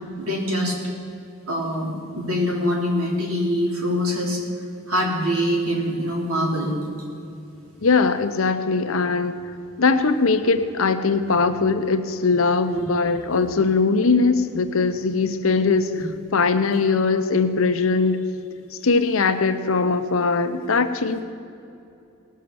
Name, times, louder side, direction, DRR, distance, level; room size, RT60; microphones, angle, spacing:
voice 1, 0.2-0.8 1.5-4.4 4.9-6.7 12.6-12.8 15.9-16.0, equal, 85° right, -2 dB, 3.2 m, -24 dB
voice 2, 7.8-9.4 9.8-16.1 16.3-18.2 18.8-21.2, left 4 dB, 70° left, 9 dB, 0.8 m, -20 dB
18.5 x 6.6 x 7.0 m, 2.7 s
head